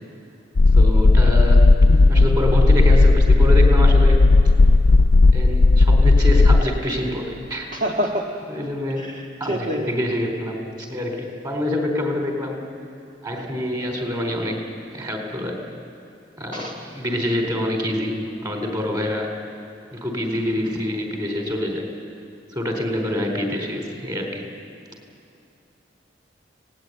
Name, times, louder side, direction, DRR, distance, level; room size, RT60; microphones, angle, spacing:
sound 1, 0.6-6.6, left 3 dB, 80° left, 0.5 m, -13 dB
voice 1, 0.7-4.2 5.3-7.7 8.5-12.6 13.2-15.6 16.4-19.4 19.9-21.9 22.5-24.5, left 1 dB, 20° right, 2 dB, 4.1 m, -26 dB
voice 2, 7.7-8.2 9.0-9.9 16.5-16.7, equal, 45° right, -1 dB, 1.6 m, -26 dB
29.5 x 18.5 x 9.5 m, 2.5 s
head